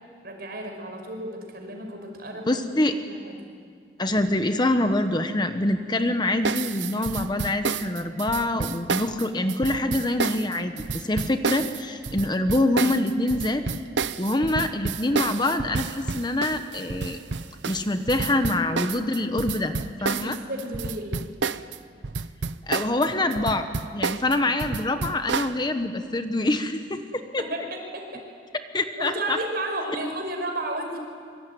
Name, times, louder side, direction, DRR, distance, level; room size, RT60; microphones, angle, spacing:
voice 1, 0.2-2.6 3.0-3.5 20.0-21.3 27.4-28.2 29.0-31.0, right 1 dB, 60° right, 3 dB, 5.4 m, -33 dB
voice 2, 2.5-2.9 4.0-13.7 14.2-17.2 17.7-19.7 20.0-20.4 22.6-23.7 23.9-27.4 28.7-29.4, left 1 dB, 25° left, 8 dB, 1.1 m, -25 dB
sound 1, 6.4-21.8 22.0-25.6, right 5 dB, 85° right, 0.8 m, -30 dB
25.5 x 24.0 x 9.4 m, 2.1 s
head